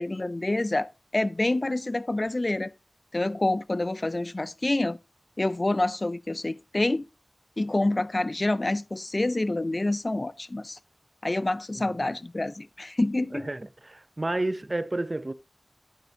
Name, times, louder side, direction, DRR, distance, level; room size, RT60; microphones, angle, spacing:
voice 1, 0.0-2.7 3.1-5.0 5.4-7.0 7.6-10.8 11.2-13.5, left 2 dB, 40° left, 0.3 m, -27 dB
voice 2, 11.7-12.1 13.3-15.3, right 2 dB, 35° right, 0.5 m, -31 dB
9.2 x 7.5 x 2.8 m
wide cardioid pair, 70°, 0 cm